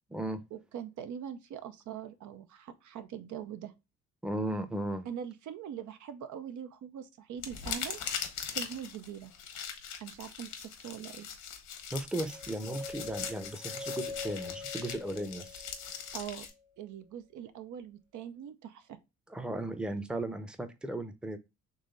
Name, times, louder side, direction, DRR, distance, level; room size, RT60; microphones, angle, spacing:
voice 1, 0.5-3.7 5.1-9.3 10.0-11.3 16.1-16.5 16.8-19.0, right 9 dB, 75° right, 0.6 m, -42 dB
voice 2, 4.2-5.1 11.9-15.6 19.3-21.4, right 1 dB, 5° right, 0.6 m, -36 dB
sound 1, 7.4-16.5, left 7 dB, 80° left, 1.1 m, -41 dB
sound 2, 12.3-16.4, left 3 dB, 50° right, 1.7 m, -44 dB
3.9 x 3.1 x 3.8 m
cardioid pair, 90°, 30 cm